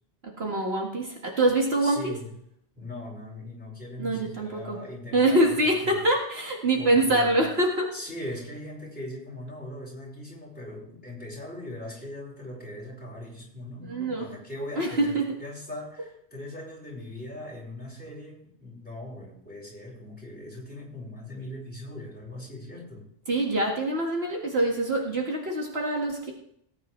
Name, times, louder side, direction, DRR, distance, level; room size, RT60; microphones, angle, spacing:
voice 1, 0.2-2.1 4.0-4.8 5.1-7.9 13.9-14.3 14.8-15.3 23.3-26.3, right 1 dB, 60° right, 0 dB, 2.1 m, -25 dB
voice 2, 1.8-2.3 2.7-6.0 6.7-7.4 7.9-23.1, left 1 dB, 10° left, -4 dB, 5.0 m, -40 dB
18.5 x 9.3 x 3.2 m, 0.71 s
omnidirectional pair, 1.2 m